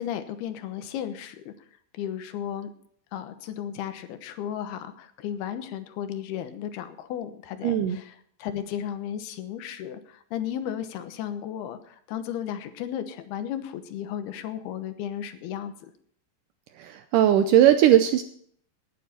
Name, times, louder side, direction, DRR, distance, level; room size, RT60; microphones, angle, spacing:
voice 1, 0.0-1.5 1.9-2.7 3.1-8.1 8.4-15.7, left 10 dB, 90° left, 9 dB, 3.0 m, -34 dB
voice 2, 7.6-8.0 16.8-18.2, right 11 dB, 80° right, 8 dB, 1.9 m, -19 dB
19.0 x 9.3 x 4.3 m, 0.63 s
omnidirectional pair, 4.4 m